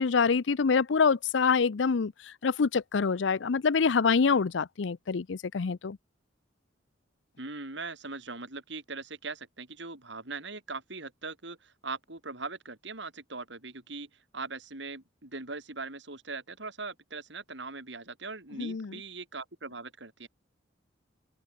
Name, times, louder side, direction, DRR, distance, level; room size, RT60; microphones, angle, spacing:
voice 1, 0.0-6.0 18.6-18.9, left 5 dB, 70° left, 0.6 m, -26 dB
voice 2, 7.4-20.3, right 3 dB, 65° right, 4.7 m, -40 dB
open air
head